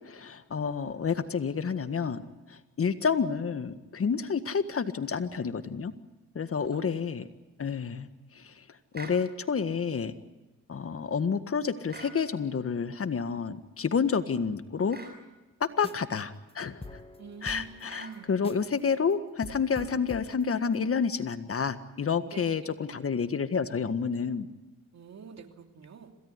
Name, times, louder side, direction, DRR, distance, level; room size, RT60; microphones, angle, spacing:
voice 1, 0.0-2.2 2.5-5.9 6.3-7.3 7.6-8.1 8.3-8.5 8.9-10.1 10.7-15.0 15.6-16.8 17.4-24.5, left 6 dB, 40° left, 11 dB, 1.7 m, -29 dB
sound 1, 8.9-9.2 11.9-12.2 14.9-15.2 17.9-18.2, right 2 dB, 30° right, 6.0 m, -44 dB
sound 2, 15.7-16.2 16.5-16.6 16.8-18.8 19.1-19.2 19.4-20.9, left 2 dB, 15° left, 2.0 m, -45 dB
voice 2, 17.2-18.3 22.3-22.8 24.9-26.1, right 6 dB, 50° right, 5 dB, 3.1 m, -47 dB
27.0 x 17.5 x 9.7 m, 1.1 s
cardioid pair, 75°, 33 cm